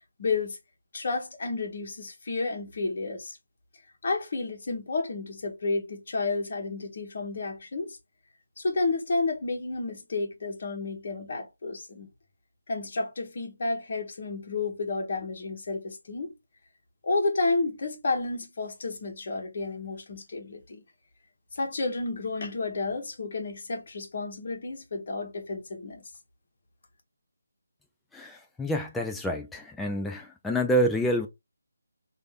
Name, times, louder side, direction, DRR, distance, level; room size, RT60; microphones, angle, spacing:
voice 1, 0.2-0.6 0.9-3.4 4.0-8.0 8.6-12.1 12.7-16.3 17.0-20.8 21.5-26.0, left 3 dB, 45° left, 1.2 m, -31 dB
voice 2, 28.1-31.3, equal, 5° left, 0.5 m, -28 dB
3.2 x 2.7 x 3.6 m
figure-of-eight pair, 155°, 0 cm